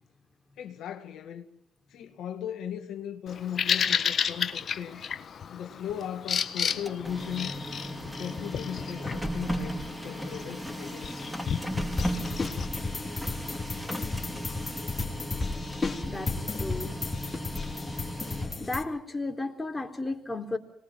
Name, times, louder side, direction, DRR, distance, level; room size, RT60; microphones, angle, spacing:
voice 1, 0.6-1.5 1.9-5.0 5.5-7.5 8.0-9.8 10.0-11.2, left 9 dB, 70° left, 1.9 m, -37 dB
Bird vocalization bird call bird song, 3.3-12.7, left 7 dB, 50° left, 1.4 m, -33 dB
Printer, 6.7-18.7, equal, 5° right, 4.9 m, -36 dB
sound 1, 12.0-18.8, left 3 dB, 30° left, 3.4 m, -33 dB
voice 2, 16.1-17.0 17.6-18.0 18.6-20.6, left 2 dB, 15° left, 4.0 m, -34 dB
25.5 x 20.5 x 7.5 m
hypercardioid pair, 55°, 0 cm